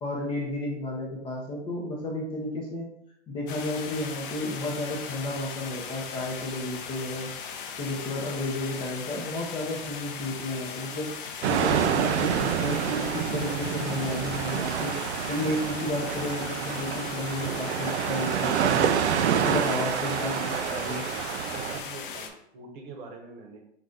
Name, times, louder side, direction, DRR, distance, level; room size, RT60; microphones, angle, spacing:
voice 1, 0.0-2.9 3.3-7.3 7.8-11.1 11.5-14.9 15.3-19.0 19.4-21.0, left 1 dB, 15° left, -2 dB, 0.7 m, -32 dB
sound 1, 3.5-22.3, left 6 dB, 50° left, 0.6 m, -38 dB
sound 2, 11.4-21.8, right 8 dB, 75° right, 0.5 m, -28 dB
voice 2, 20.0-21.0 21.4-23.6, right 4 dB, 40° right, 2 dB, 1.0 m, -42 dB
3.9 x 2.6 x 3.7 m, 0.74 s
hypercardioid pair, 130°, 34 cm